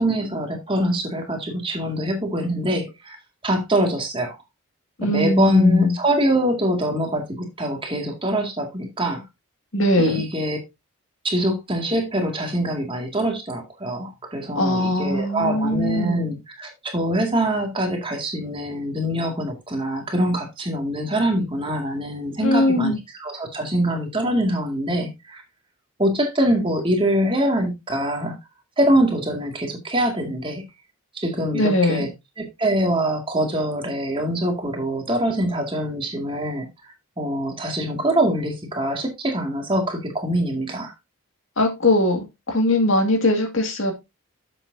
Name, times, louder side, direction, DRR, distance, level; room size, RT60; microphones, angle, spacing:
voice 1, 0.0-3.2 3.4-4.4 5.0-9.2 10.0-10.6 11.2-22.9 23.2-25.4 26.0-28.4 28.8-30.6 31.1-32.1 32.4-36.7 37.2-40.9, right 1 dB, 25° right, 2.2 m, -24 dB
voice 2, 5.0-6.0 9.7-10.2 14.6-16.2 22.4-23.0 31.5-32.1 41.6-43.9, left 1 dB, 60° left, 2.1 m, -20 dB
10.5 x 7.6 x 2.7 m
head